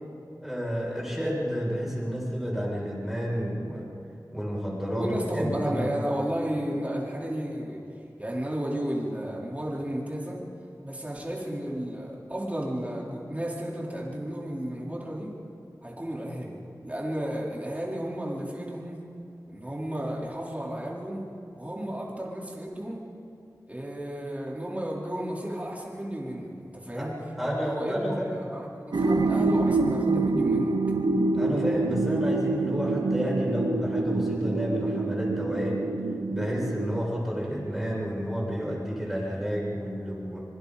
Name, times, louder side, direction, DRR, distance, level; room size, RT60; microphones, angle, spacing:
voice 1, 0.4-3.8 4.3-5.9 26.9-27.1 27.4-28.4 31.3-35.8 36.3-40.4, equal, 5° right, -5 dB, 7.0 m, -30 dB
voice 2, 5.0-7.8 8.2-10.4 10.8-15.3 15.8-19.0 19.5-21.2 21.6-23.0 23.7-27.2 27.6-30.8, right 1 dB, 20° right, -4 dB, 4.2 m, -33 dB
sound 1, 28.9-37.0, right 3 dB, 80° right, 0.8 m, -26 dB
25.5 x 23.5 x 4.3 m, 2.6 s
wide cardioid pair, 70°, 7 cm